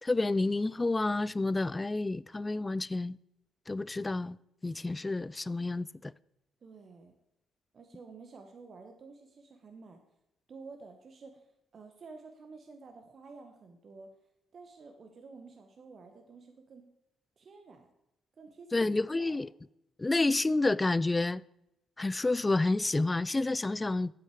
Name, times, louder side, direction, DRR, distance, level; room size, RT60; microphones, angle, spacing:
voice 1, 0.0-3.2 3.7-4.4 4.6-6.1 18.7-19.5 20.0-21.4 22.0-24.1, left 2 dB, 25° left, 0.3 m, -29 dB
voice 2, 6.6-7.1 7.7-10.0 10.5-11.5 11.7-14.1 14.5-16.8 17.4-17.9 18.4-18.8 19.2-19.4, right 4 dB, 50° right, 1.1 m, -51 dB
8.5 x 7.8 x 4.8 m
hypercardioid pair, 45°, 0 cm